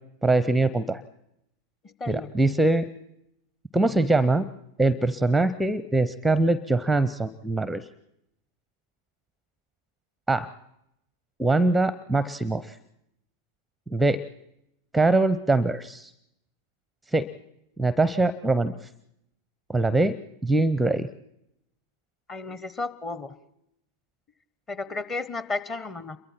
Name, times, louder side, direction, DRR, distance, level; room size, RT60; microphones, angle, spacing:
voice 1, 0.2-1.0 2.1-2.9 3.7-4.5 4.8-7.8 10.3-10.5 11.4-12.7 13.9-14.2 14.9-16.1 17.1-17.3 17.8-18.7 19.7-20.2 20.4-21.1, right 2 dB, 5° right, 17 dB, 0.7 m, -22 dB
voice 2, 1.8-2.3 22.3-23.4 24.7-26.2, left 3 dB, 25° left, 15 dB, 1.2 m, -33 dB
27.5 x 23.0 x 4.4 m, 0.80 s
figure-of-eight pair, 90°, 0 cm